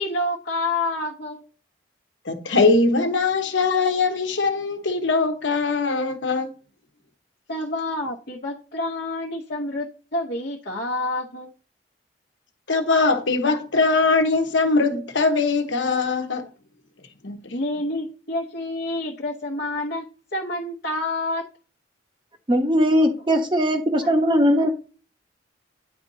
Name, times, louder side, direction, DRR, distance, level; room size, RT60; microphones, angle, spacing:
voice 1, 0.0-1.4 7.5-11.5 17.5-21.4 24.0-24.1 24.6-24.7, left 2 dB, 55° left, 0.9 m, -28 dB
voice 2, 2.2-6.5 12.7-16.4 17.2-17.5, left 3 dB, 80° left, 1.1 m, -21 dB
voice 3, 22.5-24.7, equal, 25° right, 1.0 m, -19 dB
10.5 x 4.2 x 2.7 m
head